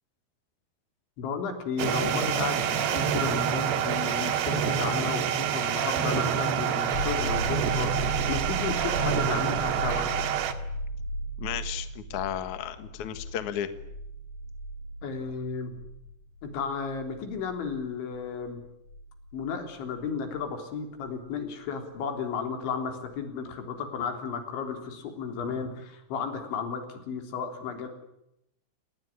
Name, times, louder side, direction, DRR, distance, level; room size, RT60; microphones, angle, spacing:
voice 1, 1.2-10.1 15.0-15.7 16.4-18.6 19.3-27.9, left 5 dB, 75° left, 6 dB, 6.0 m, -33 dB
sound 1, 1.8-10.5, right 8 dB, 70° right, 3.7 m, -27 dB
sound 2, 6.9-20.4 23.1-23.2, right 1 dB, 30° left, 6.5 m, -36 dB
voice 2, 11.4-13.7, left 10 dB, 55° left, 10 dB, 2.3 m, -33 dB
29.0 x 20.0 x 10.0 m, 0.83 s
omnidirectional pair, 5.5 m